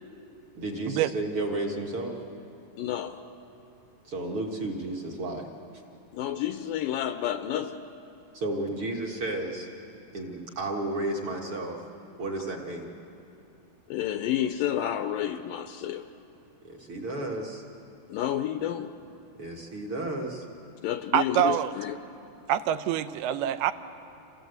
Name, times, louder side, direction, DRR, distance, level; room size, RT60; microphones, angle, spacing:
voice 1, 0.5-2.1 4.0-5.5 8.3-9.7 10.1-11.8 12.2-12.9 16.6-17.6 19.4-20.5, right 2 dB, 50° right, 0 dB, 1.6 m, -32 dB
voice 2, 2.8-3.2 6.1-7.8 13.9-16.1 18.1-18.9 20.8-22.0, left 11 dB, 80° left, 8 dB, 2.1 m, -30 dB
voice 3, 21.1-21.7 22.5-23.7, right 11 dB, 90° right, 11 dB, 2.7 m, -25 dB
28.0 x 16.5 x 8.0 m, 2.8 s
omnidirectional pair, 4.4 m